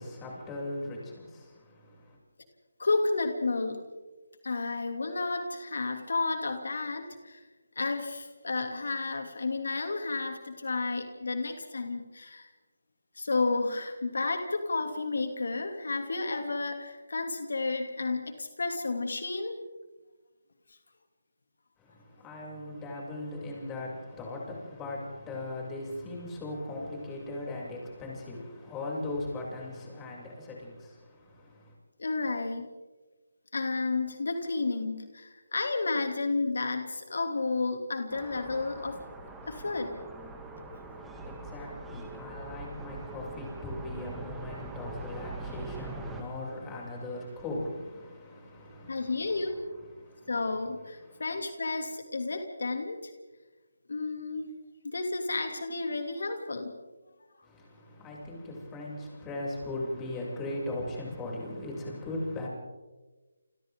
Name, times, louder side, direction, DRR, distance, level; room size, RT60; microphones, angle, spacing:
voice 1, 0.0-2.2 21.8-31.7 40.9-50.4 51.0-51.2 57.4-62.5, left 2 dB, 10° left, -3 dB, 7.0 m, -39 dB
voice 2, 2.8-3.8 4.4-7.4 7.8-12.5 13.1-19.6 32.0-32.7 33.5-39.0 39.5-39.9 48.9-49.6 50.3-53.1 53.9-54.5 54.8-56.7, left 3 dB, 70° left, 5 dB, 2.8 m, -31 dB
sound 1, 38.1-46.2, right 2 dB, 5° right, 2.3 m, -42 dB
29.5 x 27.5 x 3.8 m, 1.3 s
figure-of-eight pair, 160°, 0 cm